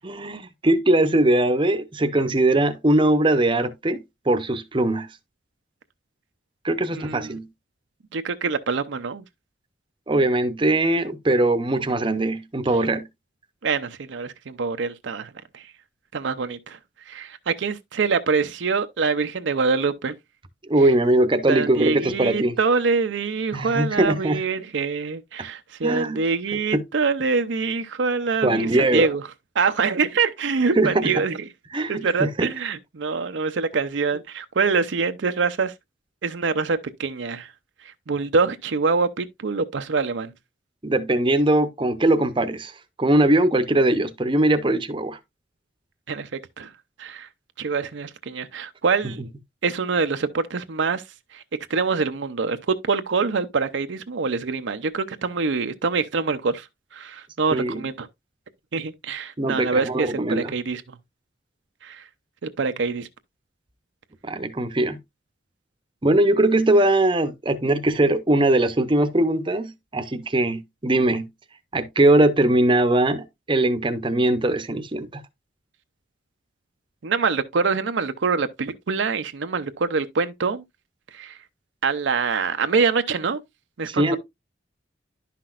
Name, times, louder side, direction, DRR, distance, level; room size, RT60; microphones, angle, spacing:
voice 1, 0.0-5.1 6.6-7.5 10.1-13.1 20.6-22.5 23.5-24.4 25.8-26.2 26.7-26.8 28.4-29.1 30.8-31.1 31.7-32.5 40.8-42.7 43.0-45.2 57.5-57.8 59.4-60.5 64.2-65.0 66.0-71.3 71.7-75.2 83.9-84.2, right 1 dB, 25° right, 0.7 m, -21 dB
voice 2, 6.9-7.4 8.1-9.2 13.6-15.7 16.1-16.8 17.1-20.1 21.5-29.2 29.6-31.4 31.9-35.7 36.2-37.5 37.8-40.3 46.1-46.3 46.6-46.7 47.0-47.3 47.6-49.2 49.6-51.0 51.3-51.4 51.7-56.7 56.9-58.1 58.7-61.0 61.8-62.0 62.4-63.1 77.0-80.6 81.1-81.4 81.8-83.4 83.8-84.2, right 4 dB, 65° right, 0.6 m, -25 dB
11.0 x 5.8 x 2.4 m
head